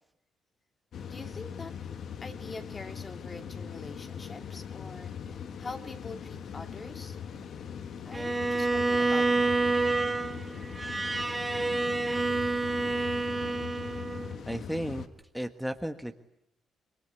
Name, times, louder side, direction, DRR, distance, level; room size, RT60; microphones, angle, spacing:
sound 1, 0.9-15.1, left 7 dB, 65° left, 1.6 m, -41 dB
voice 1, 1.1-1.8 2.2-7.2 8.0-9.6, left 3 dB, 30° left, 6 dB, 2.7 m, -44 dB
Bowed string instrument, 8.1-14.4, right 3 dB, 20° right, 1.4 m, -28 dB
voice 2, 14.5-15.0 15.3-16.1, equal, ahead, 6 dB, 1.4 m, -34 dB
27.0 x 22.5 x 9.8 m, 0.82 s
cardioid pair, 90°, 0 cm